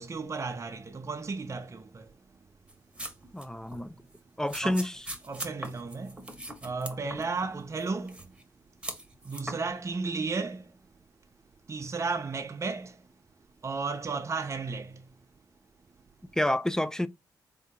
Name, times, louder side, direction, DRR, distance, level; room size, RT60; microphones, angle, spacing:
voice 1, 0.0-2.4 3.6-4.1 4.6-4.8 5.2-8.4 9.2-10.8 11.6-13.1 13.6-15.1, right 4 dB, 35° right, 0.6 m, -34 dB
sound 1, 2.7-3.4 3.7-3.8 4.5-7.5 7.8-8.4 8.8-9.6, right 1 dB, 10° right, 1.2 m, -40 dB
voice 2, 3.3-4.0 4.4-4.9 16.3-17.1, left 1 dB, 5° left, 0.4 m, -28 dB
3.6 x 2.8 x 3.6 m
supercardioid pair, 50°, 8 cm